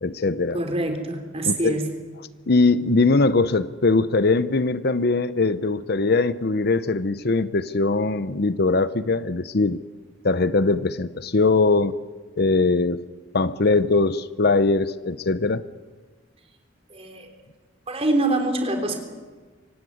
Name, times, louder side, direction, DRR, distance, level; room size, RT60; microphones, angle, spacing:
voice 1, 0.0-0.6 1.5-1.8 2.5-9.8 10.2-12.0 12.4-13.0 13.3-15.6, left 3 dB, 55° left, 14 dB, 0.8 m, -21 dB
voice 2, 0.5-1.9 16.9-17.3 17.9-19.0, right 2 dB, 30° right, 4 dB, 3.6 m, -25 dB
24.5 x 17.0 x 9.5 m, 1.4 s
head